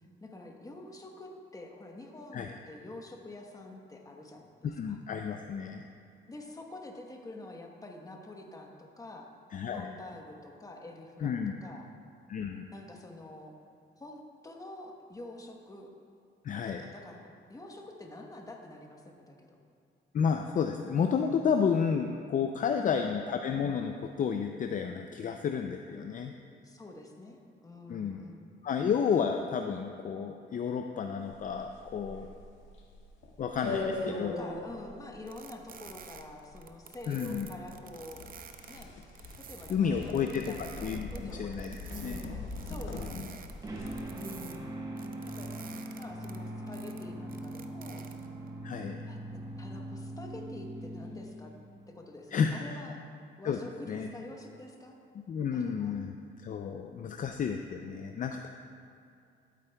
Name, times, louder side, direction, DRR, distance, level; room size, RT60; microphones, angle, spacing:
voice 1, 0.2-4.5 4.8-5.0 6.3-9.3 9.7-11.9 12.7-13.6 14.0-15.9 16.7-19.6 22.8-23.2 26.6-28.4 33.7-38.2 38.7-38.9 39.4-42.3 42.6-43.4 44.1-44.7 45.2-45.5 45.9-48.0 49.1-51.5 51.9-53.0 53.4-54.9 55.5-55.9, left 2 dB, 15° left, 2 dB, 1.0 m, -47 dB
voice 2, 4.6-5.8 9.5-9.9 11.2-11.5 12.3-12.7 16.4-16.9 20.1-26.3 27.9-28.2 28.6-32.3 33.4-33.8 34.2-34.3 37.1-37.5 39.7-40.5 40.8-42.2 43.0-43.3 48.6-49.0 52.3-52.5 53.4-53.6 53.9-54.1 55.3-58.5, left 6 dB, 40° left, 5 dB, 0.4 m, -31 dB
sound 1, 31.2-44.0, left 2 dB, 75° left, 1.6 m, -41 dB
sound 2, 35.3-44.6 45.0-48.5, right 7 dB, 45° right, 0.6 m, -50 dB
sound 3, 43.6-51.9, right 1 dB, 20° right, 1.1 m, -41 dB
12.5 x 8.3 x 2.3 m, 2.5 s
cardioid pair, 90°, 20 cm